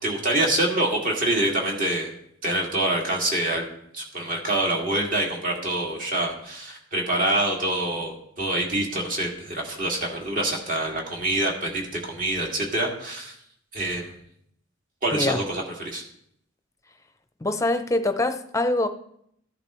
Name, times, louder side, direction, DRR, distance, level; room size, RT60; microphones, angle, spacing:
voice 1, 0.0-2.1 2.4-3.7 3.9-13.3 13.7-14.1 15.0-16.0, right 1 dB, 45° right, 0 dB, 2.3 m, -26 dB
voice 2, 17.4-18.9, left 2 dB, 15° left, 8 dB, 0.6 m, -24 dB
14.0 x 11.0 x 3.1 m, 0.72 s
head